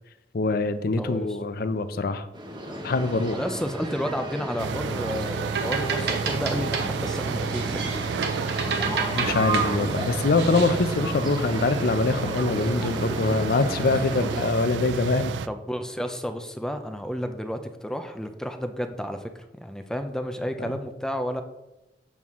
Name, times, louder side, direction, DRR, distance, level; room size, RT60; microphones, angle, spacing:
voice 1, 0.3-2.3 2.8-3.4 9.1-15.3, left 3 dB, 60° left, 12 dB, 0.5 m, -24 dB
voice 2, 1.0-1.4 3.3-7.9 14.2-14.3 15.5-21.4, equal, 5° left, 7 dB, 0.5 m, -31 dB
sound 1, 2.3-14.5, right 1 dB, 25° right, 1.1 m, -33 dB
sound 2, 4.6-15.5, right 6 dB, 85° right, 0.3 m, -31 dB
sound 3, 5.2-10.9, right 4 dB, 65° right, 1.1 m, -32 dB
7.3 x 6.1 x 3.6 m, 0.93 s
head